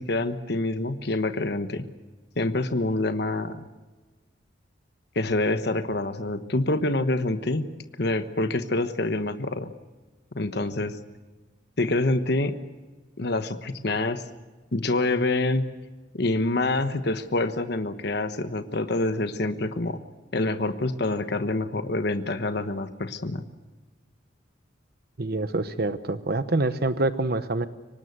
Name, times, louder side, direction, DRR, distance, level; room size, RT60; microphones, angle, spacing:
voice 1, 0.0-1.9 2.4-3.6 5.1-7.7 8.0-9.7 10.3-11.0 11.8-12.6 13.2-14.2 14.7-15.6 16.1-20.0 20.3-23.4, left 2 dB, 60° left, 9 dB, 1.2 m, -26 dB
voice 2, 25.2-27.7, right 2 dB, 55° right, 11 dB, 1.0 m, -26 dB
24.5 x 19.5 x 8.0 m, 1.3 s
head